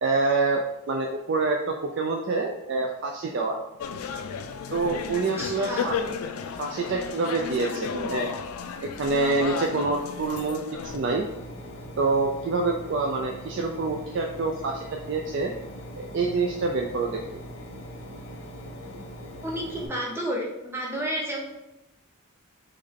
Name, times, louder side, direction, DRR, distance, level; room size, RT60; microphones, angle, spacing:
voice 1, 0.0-3.6 4.7-5.9 6.6-8.3 8.8-11.3 12.0-15.5 15.9-17.2, right 3 dB, 55° right, 2 dB, 0.3 m, -26 dB
sound 1, 3.8-11.0, left 6 dB, 90° left, 0.4 m, -33 dB
voice 2, 5.1-5.9 19.4-21.4, equal, 10° right, -2 dB, 0.7 m, -31 dB
Engine, 10.9-19.9, equal, 65° left, 0.8 m, -41 dB
3.5 x 3.2 x 3.6 m, 0.92 s
head